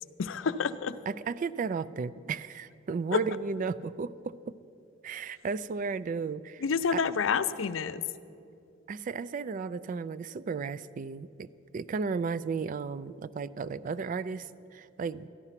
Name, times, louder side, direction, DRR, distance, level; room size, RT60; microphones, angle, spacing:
voice 1, 0.2-1.0 3.1-3.2 6.6-8.0, left 5 dB, 75° left, 12 dB, 0.5 m, -28 dB
voice 2, 1.1-4.5 5.0-6.6 6.9-7.0 8.9-15.3, right 5 dB, 40° right, 17 dB, 0.3 m, -34 dB
13.5 x 11.0 x 5.8 m, 2.6 s
head